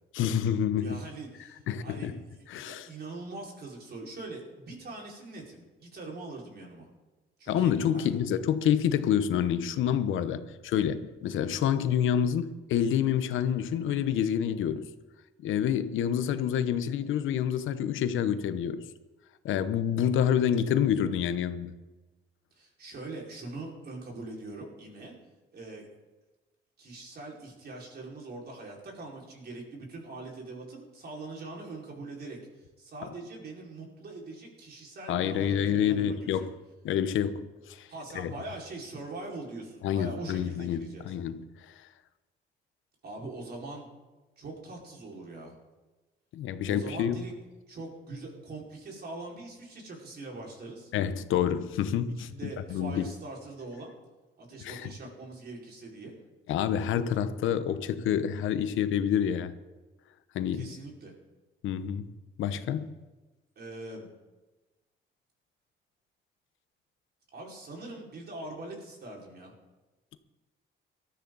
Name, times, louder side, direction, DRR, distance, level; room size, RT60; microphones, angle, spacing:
voice 1, 0.1-1.0 1.7-2.2 2.5-2.9 7.5-14.9 15.4-18.9 19.4-21.7 35.1-36.6 36.8-37.9 38.1-38.3 39.8-41.7 46.3-47.2 50.9-53.1 54.6-54.9 56.5-59.5 60.3-60.8 61.6-62.1 62.4-62.9, left 9 dB, 80° left, 1.0 m, -28 dB
voice 2, 0.8-6.9 7.4-8.2 22.5-25.1 25.5-25.8 26.8-32.4 32.8-36.5 37.9-41.1 43.0-43.9 44.4-45.5 46.7-47.3 47.7-50.9 52.2-53.9 54.4-56.2 60.5-61.1 63.6-64.1 67.3-69.5, right 2 dB, 55° right, 5.1 m, -42 dB
19.0 x 13.0 x 4.0 m
cardioid pair, 90°, 20 cm